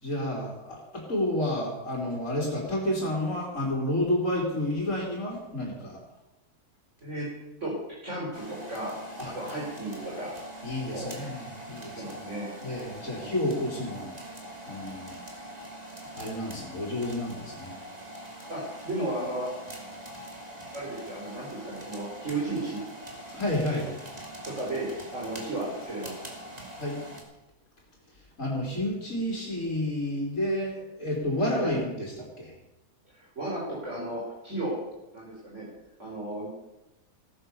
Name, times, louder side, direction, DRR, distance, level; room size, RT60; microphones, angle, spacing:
voice 1, 0.0-6.0 9.2-9.3 10.6-12.2 12.6-14.1 14.7-15.2 16.2-17.7 23.3-23.9 26.8-27.0 28.4-32.5, left 1 dB, 55° left, -2 dB, 3.7 m, -30 dB
voice 2, 8.0-9.0 9.2-10.3 10.9-11.1 12.0-12.5 13.1-13.3 18.5-19.5 20.7-22.8 24.4-26.1 31.6-31.7 33.1-34.8 35.1-35.7 36.0-36.5, right 2 dB, 50° right, -5 dB, 4.6 m, -34 dB
sound 1, 8.3-27.2, right 1 dB, 25° right, 2.8 m, -43 dB
17.0 x 10.0 x 6.9 m, 0.97 s
omnidirectional pair, 1.6 m